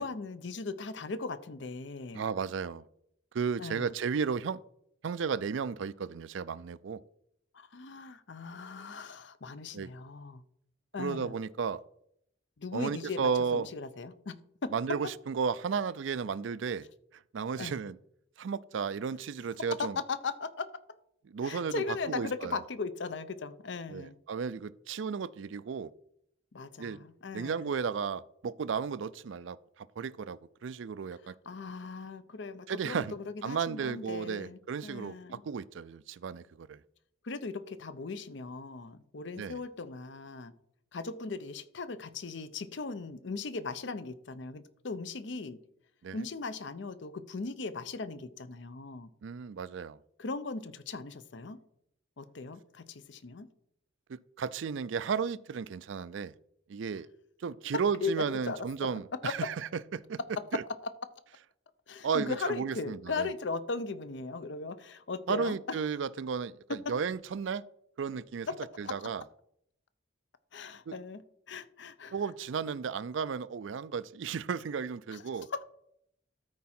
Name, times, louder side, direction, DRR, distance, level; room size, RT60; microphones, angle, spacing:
voice 1, 0.0-2.2 3.6-3.9 7.5-10.4 10.9-11.3 12.6-14.3 14.6-14.7 17.6-17.8 19.8-20.7 21.4-24.2 26.5-27.7 31.5-35.4 37.2-40.5 40.9-45.6 46.1-49.1 50.2-51.6 52.2-53.5 57.7-58.7 59.2-59.3 61.9-65.6 70.5-72.2 75.1-75.2 75.5-75.6, left 4 dB, 65° left, 13 dB, 0.6 m, -38 dB
voice 2, 2.1-2.8 3.3-4.6 5.0-7.0 9.7-9.9 11.0-11.8 12.7-13.7 14.7-16.9 17.3-18.0 18.4-20.0 21.3-22.6 23.9-25.9 26.8-27.0 27.3-31.3 32.7-33.1 33.4-36.8 39.4-39.6 46.0-46.2 49.2-50.0 54.1-56.3 56.7-57.1 57.4-60.2 60.5-60.6 62.0-63.3 65.3-67.6 68.0-68.5 68.8-69.2 70.9-71.0 72.1-75.5, right 6 dB, 70° right, 18 dB, 0.4 m, -34 dB
13.0 x 4.8 x 4.3 m, 0.73 s
head